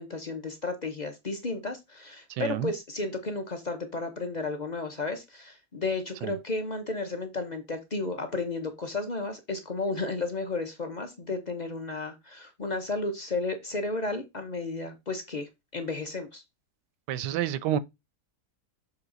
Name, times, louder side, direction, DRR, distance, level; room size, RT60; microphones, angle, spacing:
voice 1, 0.0-16.4, left 3 dB, 35° left, 0.7 m, -33 dB
voice 2, 2.3-2.7 6.2-6.4 17.1-17.8, right 11 dB, 85° right, 1.2 m, -29 dB
7.2 x 3.6 x 3.9 m
omnidirectional pair, 1.8 m